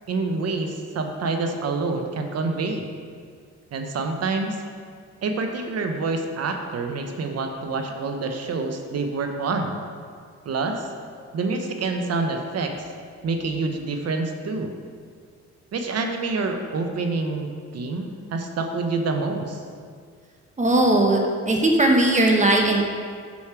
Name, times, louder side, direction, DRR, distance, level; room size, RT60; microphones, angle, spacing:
voice 1, 0.1-2.9 3.7-4.6 5.2-9.8 10.5-10.9 11.3-12.8 13.2-14.7 15.7-19.6, right 3 dB, 55° right, 5 dB, 0.9 m, -27 dB
voice 2, 20.6-22.8, right 1 dB, 25° right, 1 dB, 1.1 m, -18 dB
7.1 x 6.3 x 4.6 m, 2.1 s
cardioid pair, 90°, 30 cm